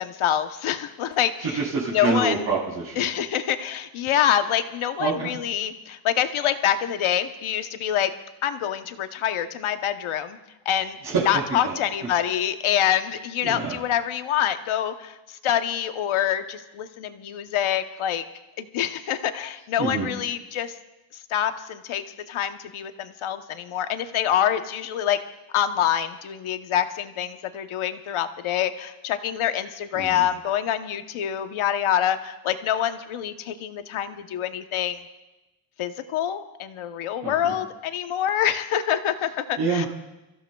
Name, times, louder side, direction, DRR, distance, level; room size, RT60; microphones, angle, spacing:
voice 1, 0.0-1.6 1.9-2.4 3.0-8.1 8.4-10.4 10.6-11.0 11.2-18.2 18.6-20.7 21.1-25.2 25.5-35.0 35.8-39.9, left 10 dB, 80° left, 8 dB, 1.0 m, -26 dB
voice 2, 1.4-3.0 5.0-5.4 11.0-11.8 13.4-13.8 19.8-20.1 29.9-30.2 37.2-37.5 39.6-39.9, right 4 dB, 70° right, -7 dB, 4.0 m, -26 dB
29.5 x 15.0 x 2.3 m, 1.0 s
wide cardioid pair, 175°, 48 cm